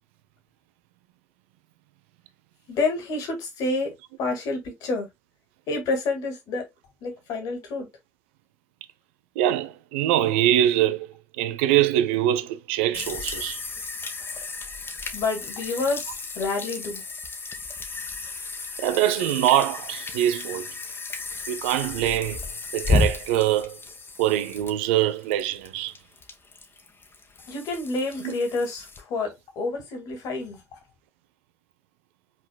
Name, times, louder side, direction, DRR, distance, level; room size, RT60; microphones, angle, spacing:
voice 1, 2.7-3.9 4.2-5.1 5.7-6.7 7.0-7.9 15.1-16.1 16.4-17.0 27.5-30.8, left 3 dB, 65° left, 2.0 m, -28 dB
voice 2, 9.4-11.1 11.4-13.6 18.8-20.7 21.5-22.4 22.7-23.8 24.2-25.9 28.2-28.3, right 12 dB, 75° right, 0.5 m, -23 dB
sound 1, 12.9-29.0, left 3 dB, 35° left, 1.2 m, -33 dB
5.5 x 4.1 x 2.2 m
figure-of-eight pair, 45°, 6 cm